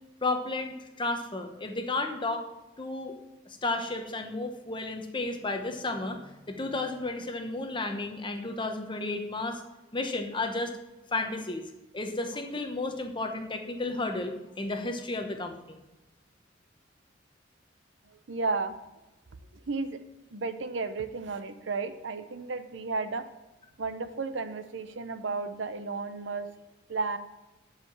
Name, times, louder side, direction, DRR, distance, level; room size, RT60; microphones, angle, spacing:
voice 1, 0.2-2.4 2.8-3.1 3.5-6.2 6.5-9.6 9.9-10.7 11.1-11.6 11.9-15.8, left 2 dB, 25° left, 5 dB, 1.0 m, -32 dB
voice 2, 18.1-18.8 19.7-20.0 20.3-23.2 23.8-26.5 26.9-27.2, right 4 dB, 65° right, 10 dB, 0.7 m, -33 dB
9.7 x 5.0 x 7.3 m, 1.0 s
head